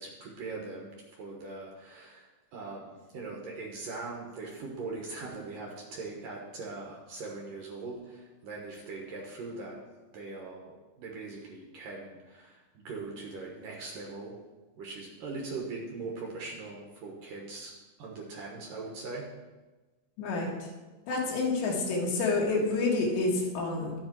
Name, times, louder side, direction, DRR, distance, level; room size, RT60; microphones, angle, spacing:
voice 1, 0.0-9.8 10.1-14.4 14.8-17.7 18.0-19.3, right 3 dB, 65° right, -1 dB, 2.3 m, -41 dB
voice 2, 20.2-20.5 21.1-23.9, left 3 dB, 75° left, -2 dB, 3.9 m, -28 dB
11.5 x 7.9 x 4.6 m, 1.2 s
omnidirectional pair, 5.1 m